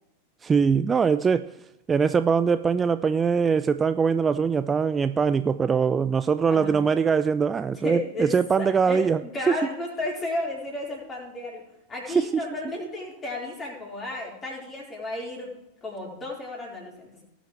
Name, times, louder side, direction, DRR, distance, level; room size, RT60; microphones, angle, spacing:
voice 1, 0.4-1.6 1.9-9.2 12.1-12.4, right 6 dB, 20° right, 13 dB, 0.3 m, -22 dB
voice 2, 7.8-11.6 11.9-17.2, left 2 dB, 20° left, -2 dB, 4.4 m, -33 dB
18.5 x 7.5 x 3.3 m, 0.95 s
figure-of-eight pair, 90°, 0 cm